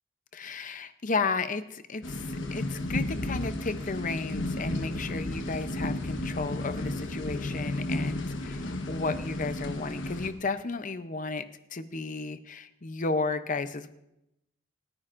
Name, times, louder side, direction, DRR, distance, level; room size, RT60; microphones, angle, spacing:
voice 1, 0.3-13.9, left 3 dB, 40° left, 11 dB, 0.6 m, -33 dB
sound 1, 2.0-10.3, left 1 dB, 60° left, 1.2 m, -33 dB
28.5 x 9.8 x 2.6 m, 0.87 s
head